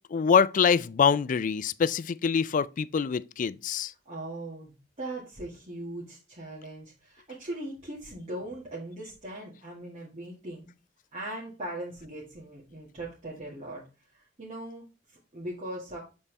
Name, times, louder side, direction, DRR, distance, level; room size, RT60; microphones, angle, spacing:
voice 1, 0.1-3.9, left 6 dB, 45° left, 0.4 m, -24 dB
voice 2, 4.1-10.7 11.1-13.8 14.1-16.0, right 1 dB, 40° right, 1.9 m, -40 dB
7.1 x 4.2 x 3.3 m
head